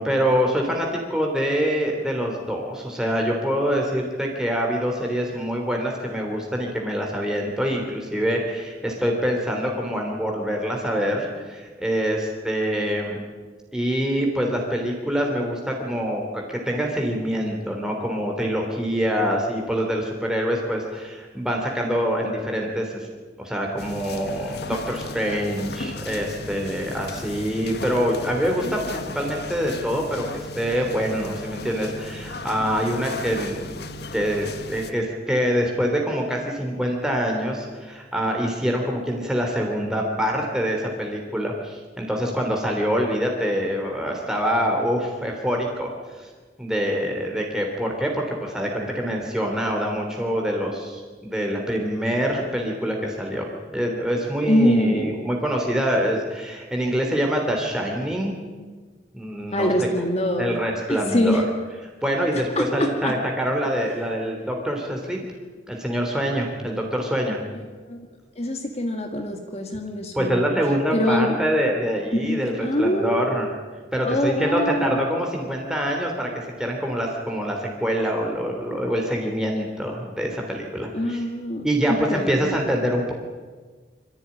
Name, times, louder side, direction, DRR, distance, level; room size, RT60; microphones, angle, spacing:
voice 1, 0.0-13.2 13.7-23.1 23.4-30.3 30.5-46.3 46.6-53.5 53.7-58.4 59.1-59.7 60.4-61.4 62.0-65.2 65.7-67.4 70.1-73.5 73.9-76.3 76.6-81.2 81.6-83.1, equal, 5° right, 0 dB, 3.2 m, -25 dB
sound 1, 23.8-34.9, left 2 dB, 60° left, 1.6 m, -36 dB
voice 2, 54.5-55.2 59.5-60.5 60.9-61.4 62.6-63.1 67.5-68.1 68.4-70.4 70.9-71.4 72.1-73.4 74.0-75.0 80.9-82.6, equal, 35° left, 4 dB, 2.0 m, -24 dB
24.0 x 15.0 x 9.8 m, 1.4 s
head